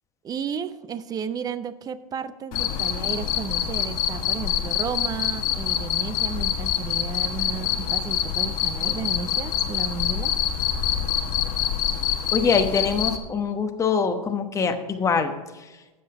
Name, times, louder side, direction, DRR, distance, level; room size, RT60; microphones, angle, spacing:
voice 1, 0.2-10.3 10.6-11.0, right 6 dB, 20° right, 14 dB, 0.5 m, -33 dB
Cricket, 2.5-13.2, left 10 dB, 45° left, 1.4 m, -26 dB
voice 2, 12.3-15.3 15.6-15.7, left 5 dB, 15° left, 6 dB, 1.0 m, -23 dB
12.5 x 7.9 x 4.8 m, 1.2 s
supercardioid pair, 135°, 20 cm